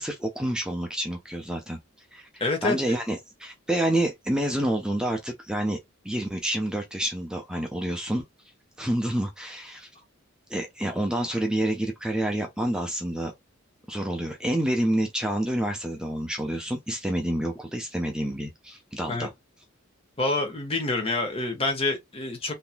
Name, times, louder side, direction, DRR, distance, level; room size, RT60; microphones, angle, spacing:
voice 1, 0.0-1.8 2.1-5.8 6.0-8.2 8.8-9.9 10.5-13.3 13.9-19.3, right 1 dB, 5° right, 0.6 m, -28 dB
voice 2, 2.4-2.8 19.1-19.3 20.2-22.5, left 3 dB, 25° left, 1.2 m, -27 dB
3.6 x 2.9 x 2.2 m
head